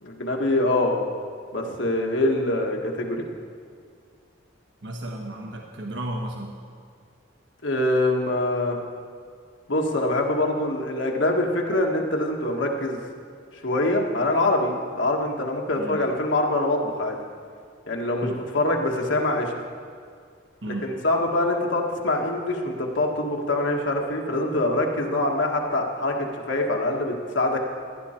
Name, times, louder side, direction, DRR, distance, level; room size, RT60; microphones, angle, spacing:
voice 1, 0.0-1.0 1.5-3.2 7.6-8.8 9.7-13.0 13.5-17.2 17.9-19.5 20.7-27.6, left 1 dB, 75° left, 1 dB, 1.6 m, -24 dB
voice 2, 4.8-6.6 15.8-16.0 18.2-18.4 20.6-20.9, right 1 dB, 65° right, 1 dB, 1.1 m, -33 dB
16.0 x 11.0 x 4.4 m, 2.1 s
head